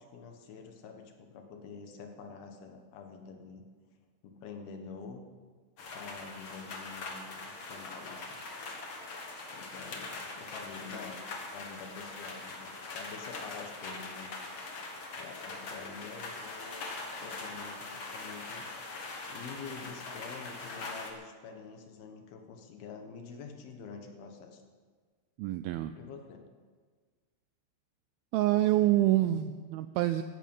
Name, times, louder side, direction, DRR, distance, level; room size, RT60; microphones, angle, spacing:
voice 1, 0.0-3.7 4.2-5.3 5.9-8.4 9.5-11.2 11.5-14.3 15.1-16.9 17.2-18.7 19.3-24.6 26.0-26.5, left 5 dB, 70° left, 4 dB, 3.1 m, -47 dB
sound 1, 5.8-21.1, left 3 dB, 50° left, 1.5 m, -42 dB
voice 2, 25.4-25.9 28.3-30.2, right 14 dB, 85° right, 10 dB, 2.1 m, -26 dB
16.0 x 13.0 x 5.5 m, 1.5 s
omnidirectional pair, 4.8 m